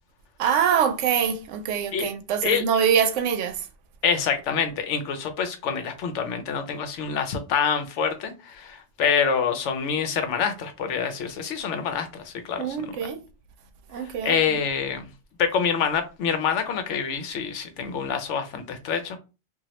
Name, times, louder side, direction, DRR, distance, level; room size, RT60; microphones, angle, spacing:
voice 1, 0.4-3.7 12.6-13.2 13.9-14.6, right 8 dB, 85° right, 0.9 m, -24 dB
voice 2, 4.0-12.8 14.0-15.1 15.4-19.2, left 6 dB, 80° left, 0.9 m, -26 dB
3.0 x 2.5 x 2.8 m
omnidirectional pair, 1.2 m